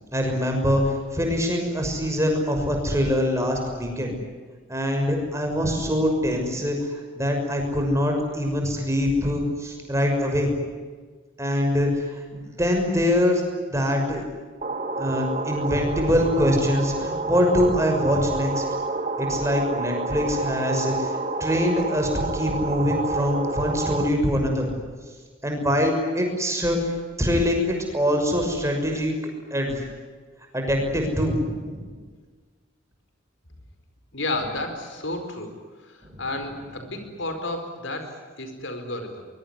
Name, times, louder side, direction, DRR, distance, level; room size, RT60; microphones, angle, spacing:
voice 1, 0.1-4.1 4.7-10.5 11.4-13.4 13.7-14.2 15.0-18.6 19.2-24.7 25.4-29.1 29.5-29.8 30.5-32.0 36.1-36.2, equal, 15° right, 3 dB, 6.1 m, -24 dB
sound 1, 14.6-24.1, right 3 dB, 35° right, 1.8 m, -29 dB
voice 2, 34.1-35.6 35.8-39.3, left 2 dB, 70° left, 7 dB, 4.8 m, -32 dB
23.5 x 22.5 x 9.7 m, 1.5 s
head